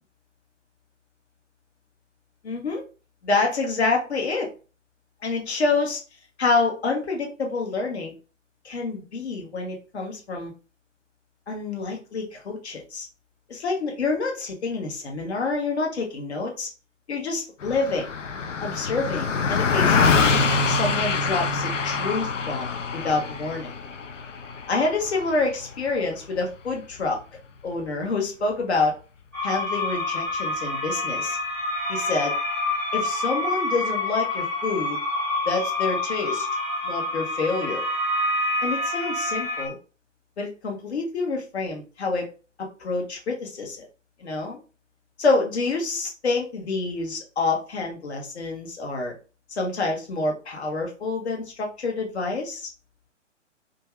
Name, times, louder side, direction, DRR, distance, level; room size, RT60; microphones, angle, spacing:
voice 1, 2.4-2.8 3.2-4.5 5.2-6.0 6.4-8.1 8.6-10.5 11.5-13.1 13.5-16.7 17.1-18.1 18.6-20.4 20.7-23.7 24.7-27.2 27.6-28.9 29.4-31.4 31.9-32.3 32.9-35.0 35.4-36.5 36.8-37.8 38.6-39.8 40.4-42.3 42.8-43.9 44.2-44.6 45.2-49.1 49.5-52.7, left 3 dB, 60° left, 1 dB, 1.0 m, -27 dB
Car passing by, 17.6-27.2, left 4 dB, 80° left, 0.5 m, -25 dB
sound 1, 29.3-39.7, left 2 dB, ahead, 0.6 m, -27 dB
2.5 x 2.4 x 3.1 m, 0.35 s
figure-of-eight pair, 125°, 37 cm